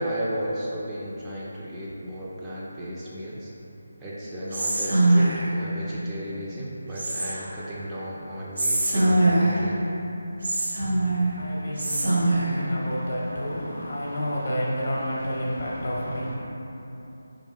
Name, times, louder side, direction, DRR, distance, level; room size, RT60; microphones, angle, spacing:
voice 1, 0.0-3.5 4.0-9.8, equal, 10° right, -8 dB, 0.3 m, -34 dB
Whispering, 4.5-5.6 7.0-7.6 8.6-9.7 10.4-11.3 11.8-12.6, right 2 dB, 55° right, 0.6 m, -22 dB
voice 2, 10.8-16.4, equal, 45° left, -5 dB, 0.6 m, -30 dB
3.2 x 2.4 x 3.2 m, 3.0 s
figure-of-eight pair, 155°, 0 cm